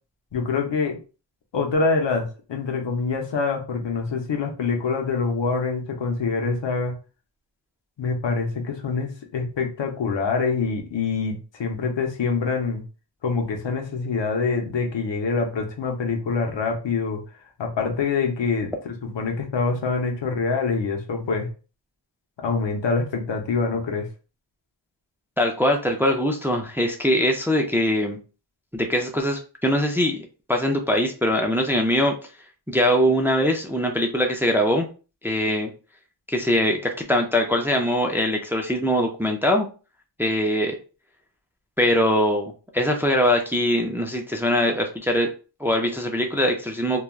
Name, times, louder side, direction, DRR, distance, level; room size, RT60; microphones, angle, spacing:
voice 1, 0.3-1.0 1.5-6.9 8.0-12.8 13.2-17.2 17.6-21.5 22.4-24.1, left 4 dB, 80° left, 3 dB, 0.8 m, -25 dB
voice 2, 25.4-28.2 28.7-32.1 32.7-34.9 35.2-35.7 36.3-39.7 40.2-40.8 41.8-45.3 45.6-47.0, equal, 5° right, 2 dB, 0.4 m, -22 dB
3.1 x 2.2 x 2.3 m, 0.34 s
wide cardioid pair, 90°, 43 cm